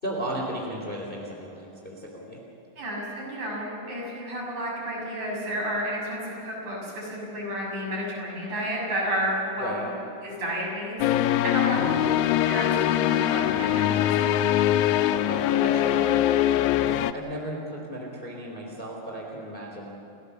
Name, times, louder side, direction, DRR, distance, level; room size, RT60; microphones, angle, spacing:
voice 1, 0.0-2.4 9.6-9.9 11.7-12.0 15.1-16.4 17.1-19.9, right 1 dB, 15° left, -1 dB, 3.5 m, -35 dB
voice 2, 2.8-9.9 10.2-11.0 11.4-11.8 12.5-14.1, equal, 55° right, -4 dB, 8.1 m, -31 dB
sound 1, 11.0-17.1, left 12 dB, 85° left, 2.5 m, -22 dB
30.0 x 16.5 x 7.2 m, 2.8 s
omnidirectional pair, 4.1 m